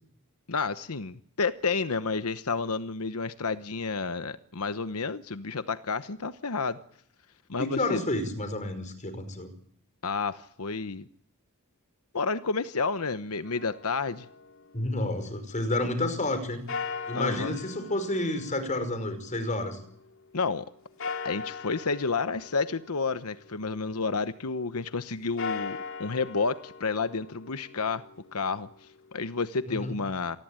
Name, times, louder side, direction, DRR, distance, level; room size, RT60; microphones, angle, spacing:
voice 1, 0.5-6.8 7.5-8.0 10.0-11.1 12.1-14.3 17.1-17.6 20.3-20.7 21.2-28.0 28.3-30.4, left 4 dB, 85° left, 12 dB, 1.0 m, -30 dB
voice 2, 7.6-9.5 14.7-16.6 17.1-19.8 29.7-29.9, left 1 dB, 35° left, 10 dB, 5.1 m, -30 dB
sound 1, 13.4-15.5 16.7-20.1 21.0-24.0 25.2-29.2, left 5 dB, 65° left, 2.4 m, -40 dB
28.0 x 19.5 x 9.0 m, 0.68 s
head